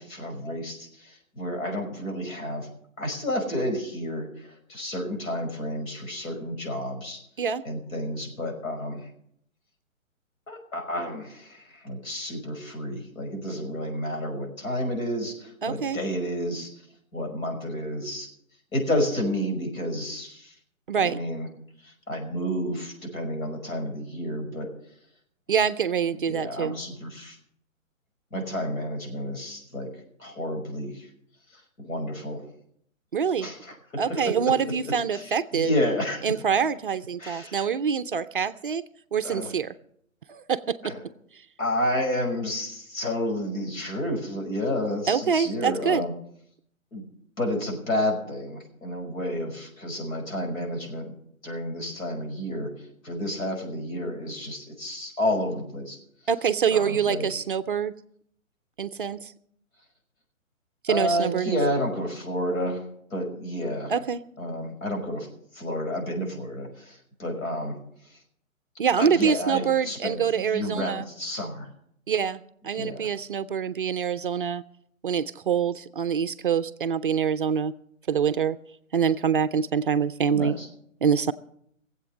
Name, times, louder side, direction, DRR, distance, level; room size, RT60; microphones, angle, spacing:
voice 1, 0.0-2.7 3.0-7.2 7.6-9.1 10.5-16.7 17.1-18.3 18.7-20.5 21.0-21.5 21.8-24.7 26.3-27.4 28.3-29.9 30.2-31.1 31.5-32.5 33.4-34.3 34.7-36.2 37.2-37.7 39.2-39.5 40.8-41.0 41.6-46.1 46.9-47.1 47.4-51.1 51.4-56.0 56.7-57.3 60.9-62.8 63.1-63.9 64.4-65.3 65.5-67.8 68.0-68.2 69.0-71.7 72.7-73.1 80.3-80.7, left 1 dB, 75° left, 2 dB, 5.6 m, -30 dB
voice 2, 15.6-16.0 20.9-21.2 25.5-26.8 33.1-33.5 34.0-35.7 36.2-38.8 39.1-39.7 40.3-40.9 45.1-46.1 56.3-57.9 58.8-59.3 60.8-61.6 63.9-64.2 68.8-71.1 72.1-74.6 75.0-77.7 78.1-78.6 78.9-80.5 81.0-81.3, right 7 dB, 40° right, 12 dB, 0.5 m, -25 dB
20.0 x 8.0 x 6.3 m, 0.69 s
hypercardioid pair, 150°, 41 cm